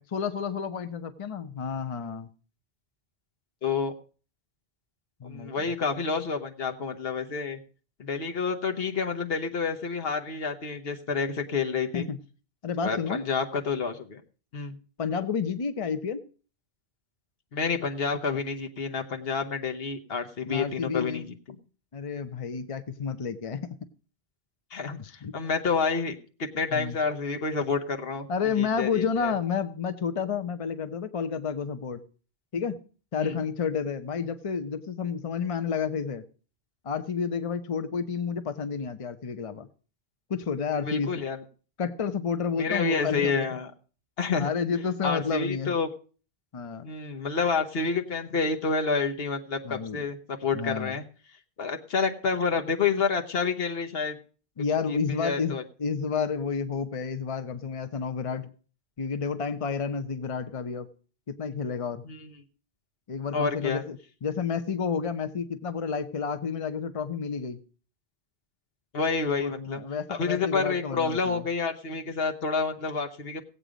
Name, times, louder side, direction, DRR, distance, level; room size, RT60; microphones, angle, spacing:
voice 1, 0.1-2.3 5.2-5.7 11.9-12.2 12.6-13.2 15.0-16.2 20.5-21.2 21.9-23.8 25.0-25.3 26.7-27.0 28.3-32.0 32.5-32.8 33.1-36.3 36.8-39.7 40.3-41.1 41.8-43.5 44.4-45.7 46.5-46.8 49.6-50.0 50.5-51.0 54.6-58.5 59.0-60.9 61.3-62.0 63.1-67.6 69.4-71.4, left 6 dB, 35° left, 10 dB, 0.7 m, -30 dB
voice 2, 3.6-3.9 5.2-7.6 8.0-12.1 12.8-14.2 14.5-14.8 17.5-21.3 24.7-28.3 28.5-29.3 33.2-33.4 40.8-41.4 42.6-43.7 44.2-44.5 45.0-45.9 46.8-51.0 51.6-54.2 54.9-55.6 62.0-62.3 63.3-63.8 68.9-69.8 70.1-73.4, left 5 dB, 70° left, 5 dB, 1.3 m, -29 dB
17.0 x 8.2 x 5.0 m, 0.39 s
omnidirectional pair, 1.0 m